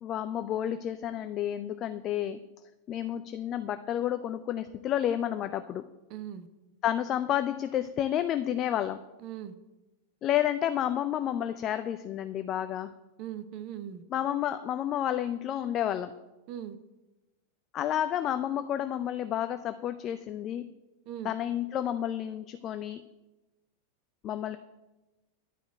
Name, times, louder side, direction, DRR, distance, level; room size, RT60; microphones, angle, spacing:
voice 1, 0.0-2.4 2.9-5.8 6.8-9.0 10.2-12.9 14.1-16.1 17.7-20.6 21.2-23.0 24.2-24.6, left 11 dB, 30° left, 10 dB, 0.4 m, -30 dB
voice 2, 6.1-6.5 9.2-9.5 13.2-14.0 16.5-16.8 21.1-21.3, right 10 dB, 40° right, 11 dB, 0.7 m, -39 dB
10.0 x 5.0 x 8.0 m, 1.0 s
figure-of-eight pair, 90°, 0 cm